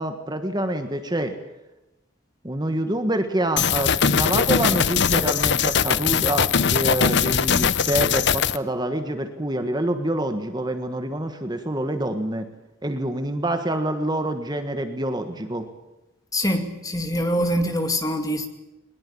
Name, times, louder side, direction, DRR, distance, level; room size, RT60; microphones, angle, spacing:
voice 1, 0.0-1.3 2.4-12.5 12.8-15.7, right 1 dB, 20° right, 1.5 m, -26 dB
sound 1, 3.6-8.6, left 7 dB, 55° left, 0.8 m, -21 dB
voice 2, 16.3-18.5, equal, 15° left, 2.2 m, -24 dB
21.5 x 21.0 x 8.5 m
head